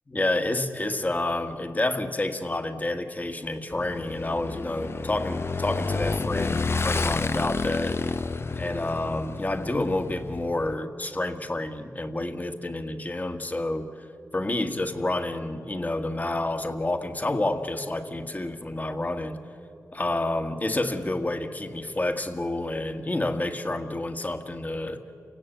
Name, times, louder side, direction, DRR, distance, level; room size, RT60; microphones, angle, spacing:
voice 1, 0.1-8.0 8.6-14.1 14.3-19.4 19.9-25.0, left 2 dB, 25° left, 8 dB, 1.6 m, -29 dB
Motorcycle / Engine, 3.7-10.7, left 3 dB, 45° left, 0.7 m, -30 dB
29.0 x 17.0 x 9.0 m, 3.0 s
wide cardioid pair, 80°, 6 cm